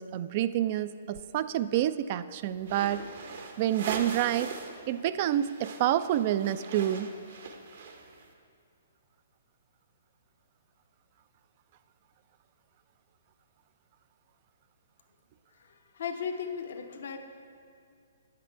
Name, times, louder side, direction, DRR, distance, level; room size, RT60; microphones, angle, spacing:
voice 1, 0.0-3.0 3.6-4.5 4.9-7.1, right 12 dB, 45° right, 14 dB, 0.3 m, -28 dB
sound 1, 2.6-4.8 5.1-8.2, right 4 dB, 65° right, 1.0 m, -40 dB
voice 2, 15.5-17.2, left 6 dB, 65° left, 6 dB, 0.8 m, -36 dB
9.2 x 7.7 x 4.5 m, 2.4 s
hypercardioid pair, 130°, 0 cm